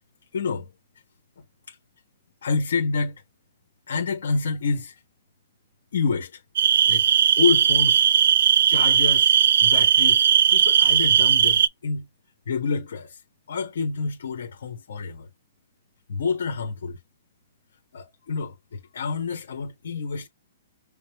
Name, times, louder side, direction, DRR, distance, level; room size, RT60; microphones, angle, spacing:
voice 1, 0.3-0.7 1.4-1.8 2.4-3.2 3.9-5.0 5.9-6.4 6.9-7.1 7.4-8.0 8.6-12.1 12.5-13.2 13.5-15.3 16.1-17.0 17.9-20.3, left 5 dB, 75° left, 1.4 m, -28 dB
sound 1, 6.6-11.7, right 9 dB, 65° right, 0.4 m, -18 dB
5.2 x 2.1 x 3.0 m
hypercardioid pair, 165°, 0 cm